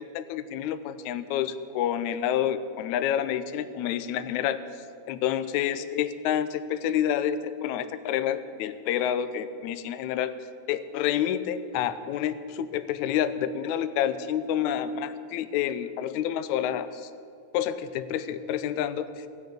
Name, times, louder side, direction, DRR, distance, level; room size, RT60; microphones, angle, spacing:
voice 1, 0.0-4.6 5.1-10.3 10.7-17.1 17.5-19.3, left 10 dB, 80° left, 12 dB, 1.8 m, -28 dB
17.5 x 7.0 x 10.0 m, 2.4 s
omnidirectional pair, 4.0 m